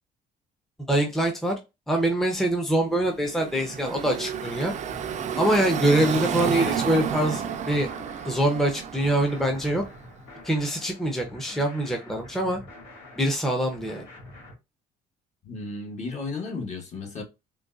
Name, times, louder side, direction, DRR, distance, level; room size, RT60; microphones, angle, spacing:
voice 1, 0.9-1.5 1.9-4.7 5.4-7.9 8.2-9.8 10.4-12.6 13.2-14.1, right 1 dB, ahead, 0.6 m, -24 dB
Car passing by / Traffic noise roadway noise, 3.1-10.1, right 8 dB, 45° right, 0.4 m, -31 dB
sound 1, 4.9-14.5, left 2 dB, 85° left, 1.8 m, -47 dB
voice 2, 15.4-17.2, left 3 dB, 45° left, 1.2 m, -34 dB
3.8 x 2.3 x 2.4 m
cardioid pair, 110°, 17 cm